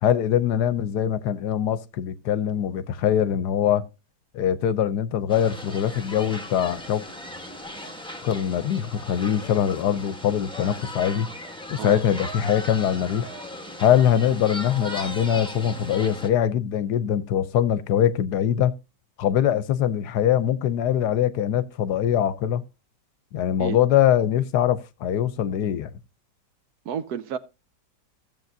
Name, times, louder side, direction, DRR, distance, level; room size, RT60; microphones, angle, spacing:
voice 1, 0.0-3.9 4.3-7.0 8.2-11.3 11.7-13.3 13.8-18.8 19.2-22.6 23.3-25.9, left 10 dB, 70° left, 1.2 m, -23 dB
sound 1, 5.3-16.3, left 1 dB, 5° left, 0.8 m, -37 dB
voice 2, 26.9-27.4, right 8 dB, 70° right, 1.1 m, -30 dB
15.5 x 7.2 x 2.6 m
omnidirectional pair, 1.9 m